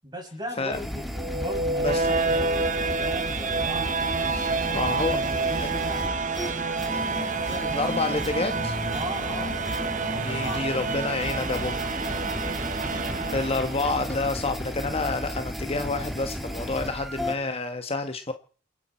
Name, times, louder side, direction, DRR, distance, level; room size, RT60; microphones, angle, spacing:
voice 1, 0.0-6.2 6.9-8.3 8.9-9.5 10.2-11.0 12.9-13.2, equal, 25° right, 6.8 m, -38 dB
sound 1, 0.7-17.4, equal, ahead, 2.5 m, -34 dB
sound 2, 1.1-14.1, right 4 dB, 45° right, 1.2 m, -28 dB
voice 2, 4.7-5.2 5.6-5.7 7.7-8.8 9.3-9.5 10.2-11.8 13.3-18.3, left 3 dB, 30° left, 1.4 m, -28 dB
29.0 x 10.5 x 4.4 m
head